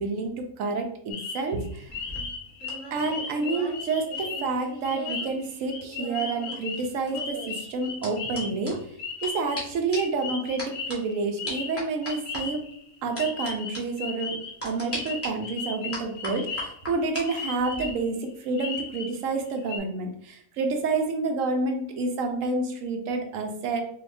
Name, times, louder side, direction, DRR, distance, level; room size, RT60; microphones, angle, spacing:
voice 1, 0.0-1.9 2.9-8.8 9.2-12.7 13.0-23.8, right 3 dB, 70° right, 4 dB, 0.9 m, -29 dB
sound 1, 1.1-12.9 13.2-14.5 14.9-16.9 17.2-18.1 18.6-19.2 19.5-19.8, left 5 dB, 75° left, 1.0 m, -36 dB
sound 2, 1.9-5.3 5.6-9.3 9.6-9.7 9.9-10.2 10.6-11.0 11.5-12.4 13.2-13.5 13.7-13.8 14.6-15.3 15.9-17.2 17.6-17.9, equal, 10° left, 0.9 m, -38 dB
3.3 x 2.8 x 2.5 m, 0.66 s
omnidirectional pair, 1.6 m